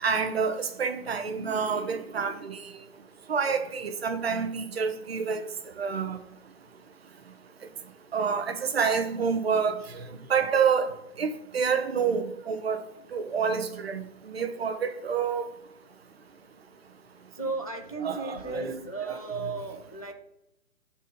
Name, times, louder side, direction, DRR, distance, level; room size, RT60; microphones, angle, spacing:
voice 1, 0.0-2.6 3.3-5.4 5.8-6.2 8.1-9.8 10.3-10.9 11.2-12.8 13.1-15.4 18.0-18.8 19.1-19.2, right 6 dB, 45° right, 0.8 m, -28 dB
voice 2, 17.3-20.1, right 3 dB, 30° left, 0.4 m, -35 dB
5.0 x 4.2 x 5.4 m
hypercardioid pair, 155°, 43 cm